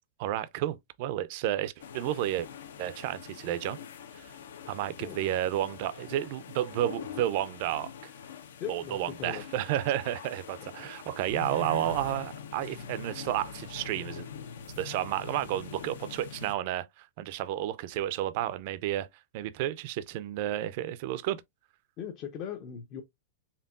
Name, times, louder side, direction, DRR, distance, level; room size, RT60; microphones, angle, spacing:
voice 1, 0.2-2.5 2.8-3.8 4.1-4.3 4.7-8.1 8.7-14.3 14.8-19.1 19.3-21.4, right 13 dB, 40° right, 0.4 m, -31 dB
sound 1, 1.8-16.5, left 7 dB, 90° left, 0.9 m, -43 dB
voice 2, 8.6-9.4 22.0-23.0, left 7 dB, 30° left, 0.5 m, -38 dB
4.4 x 3.4 x 2.4 m
supercardioid pair, 170°, 0 cm